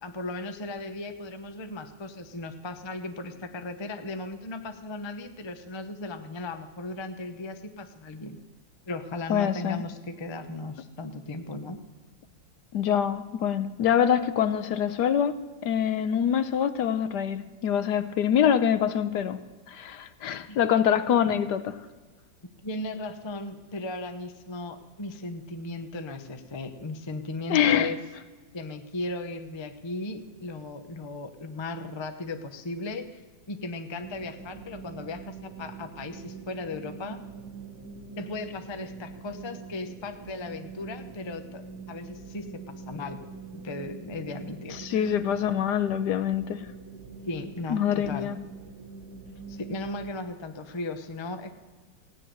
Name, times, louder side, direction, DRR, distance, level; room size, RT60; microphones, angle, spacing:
voice 1, 0.0-8.4 8.9-11.8 18.4-18.5 20.5-20.6 22.6-28.0 28.5-33.2 33.5-37.2 38.2-41.6 41.9-43.2 43.6-44.8 47.3-48.3 49.5-51.5, left 2 dB, 25° left, 8 dB, 0.5 m, -36 dB
voice 2, 9.3-9.8 12.7-15.4 15.6-19.4 19.7-21.8 27.5-27.9 44.7-46.7 47.7-48.4, left 9 dB, 70° left, 12 dB, 1.2 m, -25 dB
sound 1, 34.0-50.2, right 5 dB, 60° right, 1.6 m, -43 dB
16.0 x 9.8 x 7.7 m, 1.3 s
omnidirectional pair, 2.0 m